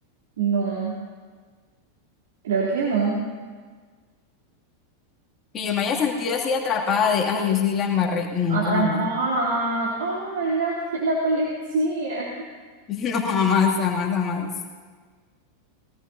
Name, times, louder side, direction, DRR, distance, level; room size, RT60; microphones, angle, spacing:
voice 1, 0.4-0.9 2.4-3.2 8.5-12.3, right 3 dB, 60° right, -6 dB, 3.3 m, -24 dB
voice 2, 5.5-9.1 12.9-14.5, left 6 dB, 25° left, -1 dB, 2.6 m, -23 dB
22.0 x 18.0 x 2.8 m, 1.5 s
figure-of-eight pair, 90°, 0 cm